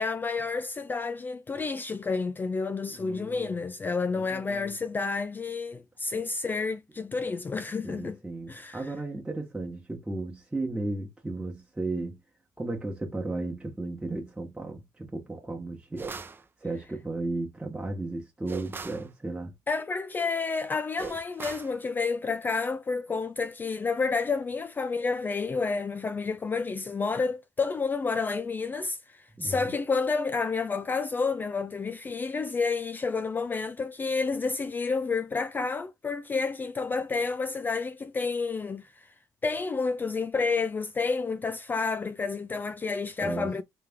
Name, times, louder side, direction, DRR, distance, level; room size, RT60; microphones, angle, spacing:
voice 1, 0.0-8.2 8.5-8.8 19.7-39.1 39.4-43.6, left 4 dB, 25° left, 0.3 m, -30 dB
voice 2, 2.9-3.5 4.1-4.7 7.8-12.2 12.6-16.1 16.6-19.5 29.4-29.7 43.2-43.6, right 2 dB, 10° right, 1.1 m, -35 dB
sound 1, 16.0-16.4 18.5-19.1 21.0-21.7, right 4 dB, 30° right, 0.7 m, -39 dB
3.3 x 3.2 x 3.6 m
cardioid pair, 95°, 7 cm